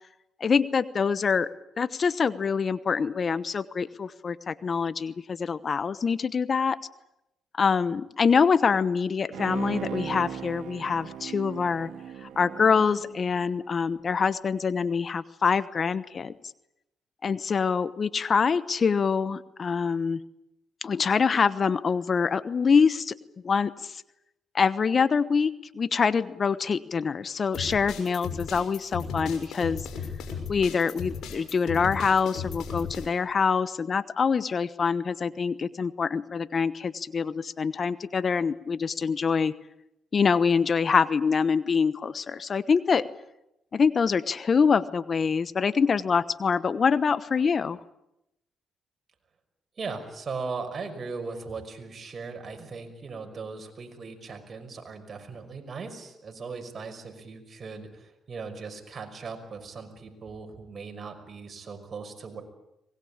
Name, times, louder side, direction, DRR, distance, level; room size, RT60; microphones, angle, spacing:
voice 1, 0.4-1.5 1.8-6.8 7.6-11.9 12.2-16.3 17.2-20.2 20.8-23.2 23.4-24.0 24.5-29.8 30.5-39.5 40.1-43.1 43.7-47.8, left 5 dB, 50° left, 16 dB, 1.0 m, -25 dB
Bowed string instrument, 9.3-13.9 14.3-14.4, right 8 dB, 75° right, 2.0 m, -38 dB
sound 1, 27.5-33.1, left 6 dB, 80° left, 6.1 m, -35 dB
voice 2, 49.8-62.4, right 4 dB, 45° right, 5 dB, 5.7 m, -38 dB
24.5 x 21.0 x 8.7 m, 0.86 s
supercardioid pair, 65°, 0 cm